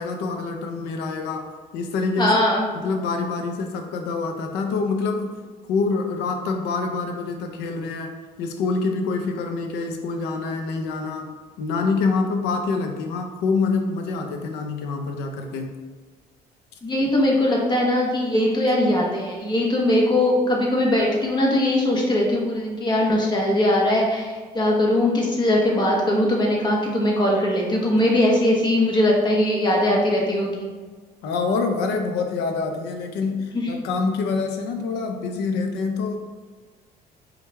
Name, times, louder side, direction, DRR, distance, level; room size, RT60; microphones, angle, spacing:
voice 1, 0.0-2.5 2.7-5.3 5.7-8.1 8.4-15.8 17.0-17.1 31.2-36.2, left 4 dB, 90° left, 5 dB, 0.6 m, -26 dB
voice 2, 2.2-2.7 16.8-30.7 33.5-33.7, left 1 dB, 25° left, -2 dB, 1.0 m, -20 dB
4.6 x 2.3 x 3.3 m, 1.5 s
cardioid pair, 110°, 17 cm